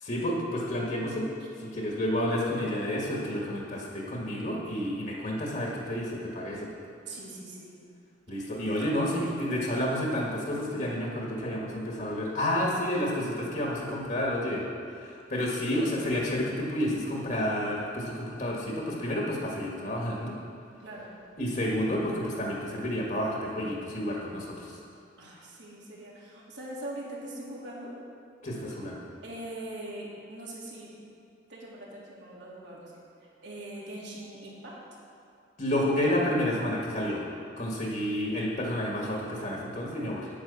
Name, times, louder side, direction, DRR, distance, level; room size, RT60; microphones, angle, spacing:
voice 1, 0.0-1.3 1.6-6.7 8.3-14.6 15.3-20.4 21.4-24.8 28.4-29.0 35.6-37.2 37.6-40.3, left 1 dB, 40° left, -2 dB, 1.7 m, -30 dB
voice 2, 7.1-7.8 20.8-21.4 25.2-27.9 29.2-30.9 31.5-32.9 33.4-34.7, right 1 dB, 70° right, -5 dB, 3.0 m, -42 dB
9.6 x 9.1 x 7.0 m, 2.6 s
head